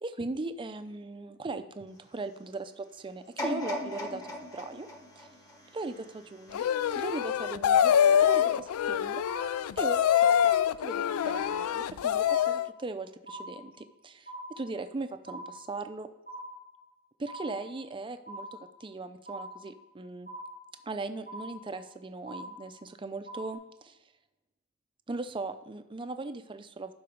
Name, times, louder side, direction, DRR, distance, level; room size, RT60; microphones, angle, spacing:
voice 1, 0.0-4.2 4.5-4.9 5.2-5.3 5.7-6.6 7.0-7.9 8.2-9.2 9.8-10.5 10.8-14.3 14.6-16.1 17.2-20.3 20.9-24.0 25.1-26.9, right 3 dB, 25° right, 9 dB, 0.5 m, -38 dB
sound 1, 3.4-6.4 7.0-7.1, equal, 15° left, 1.2 m, -38 dB
sound 2, 6.5-12.7, left 9 dB, 75° left, 0.3 m, -25 dB
sound 3, 8.3-8.9 9.3-9.9 10.3-10.9 11.3-11.9 12.3-12.9 13.3-13.9 14.3-14.9 15.3-15.9 16.3-16.9 17.3-17.9 18.3-18.9 19.3-19.9 20.3-20.9 21.3-21.9 22.3-22.9 23.3-23.5, right 1 dB, 45° left, 2.9 m, -44 dB
11.5 x 4.1 x 5.1 m, 0.95 s
head